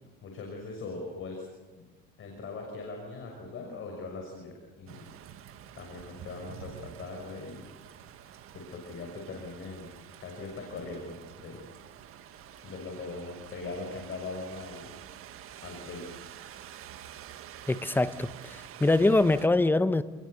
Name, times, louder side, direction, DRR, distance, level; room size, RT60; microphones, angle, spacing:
voice 1, 0.2-1.4 1.7-1.9 2.2-5.1 5.7-7.7 8.5-9.9 10.2-11.7 12.6-14.9 15.6-16.1, left 3 dB, 40° left, 6.4 m, -40 dB
sound 1, 4.9-19.5, right 10 dB, 45° right, 1.7 m, -48 dB
voice 2, 17.7-20.0, left 2 dB, 5° left, 0.9 m, -24 dB
29.5 x 20.5 x 6.8 m
supercardioid pair, 105°, 32 cm